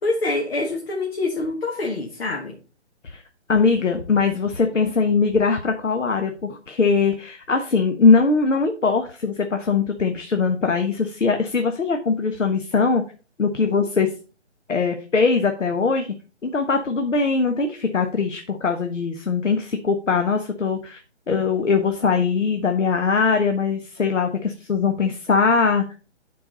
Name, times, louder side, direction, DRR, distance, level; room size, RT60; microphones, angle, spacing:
voice 1, 0.0-2.6, left 2 dB, 55° left, 0 dB, 1.9 m, -25 dB
voice 2, 3.5-13.0 13.4-14.1 14.7-16.1 16.4-21.0 21.3-25.8, left 4 dB, 80° left, 5 dB, 1.3 m, -21 dB
10.5 x 4.6 x 4.2 m, 0.34 s
figure-of-eight pair, 155°, 36 cm